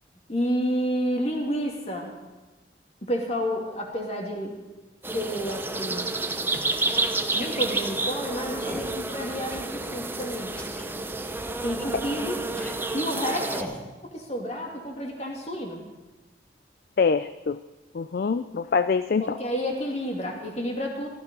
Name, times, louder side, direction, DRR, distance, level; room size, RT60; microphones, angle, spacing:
voice 1, 0.3-2.2 3.0-4.6 5.1-6.1 7.3-10.6 11.6-13.5 14.0-15.8 19.2-21.1, equal, 40° left, 1 dB, 2.5 m, -30 dB
sound 1, 5.0-13.6, right 2 dB, 10° right, 0.6 m, -30 dB
sound 2, 7.7-8.1 8.6-9.0 9.5-10.0 10.6-10.9 11.6-12.0 12.6-12.7 13.4-13.9, equal, 10° left, 1.4 m, -39 dB
voice 2, 17.0-17.6 17.9-19.4, left 5 dB, 55° left, 12 dB, 0.4 m, -24 dB
15.5 x 13.0 x 5.4 m, 1.2 s
head